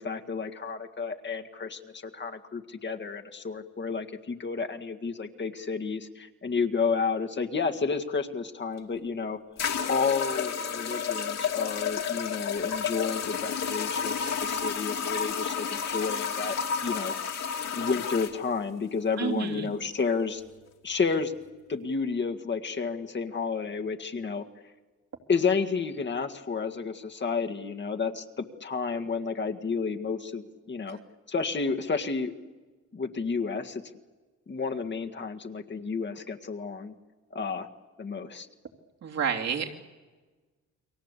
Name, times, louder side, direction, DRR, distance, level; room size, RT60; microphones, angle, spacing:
voice 1, 0.0-9.4 9.9-16.6 16.8-17.2 17.7-20.4 20.8-21.3 21.7-24.5 25.3-31.0 31.3-32.3 32.9-33.8 34.5-36.9 37.3-37.7 38.0-38.5, left 5 dB, 35° left, 5 dB, 1.9 m, -31 dB
sound 1, 8.8-8.9 9.6-18.3, left 7 dB, 60° left, 2.8 m, -31 dB
voice 2, 19.2-19.7 39.0-39.9, right 7 dB, 60° right, 2 dB, 3.2 m, -30 dB
29.5 x 23.0 x 8.3 m, 1.3 s
cardioid pair, 90°, 30 cm